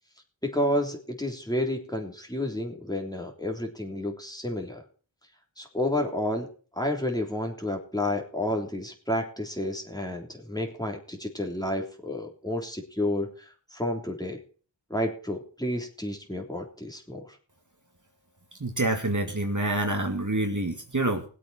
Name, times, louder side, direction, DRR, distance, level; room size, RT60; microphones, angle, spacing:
voice 1, 0.4-4.8 5.6-6.5 6.8-14.4 14.9-17.4, left 1 dB, 10° left, 2 dB, 3.4 m, -30 dB
voice 2, 18.6-21.2, right 2 dB, 40° right, 3 dB, 2.2 m, -27 dB
20.5 x 8.4 x 4.4 m, 0.40 s
wide cardioid pair, 50°, 46 cm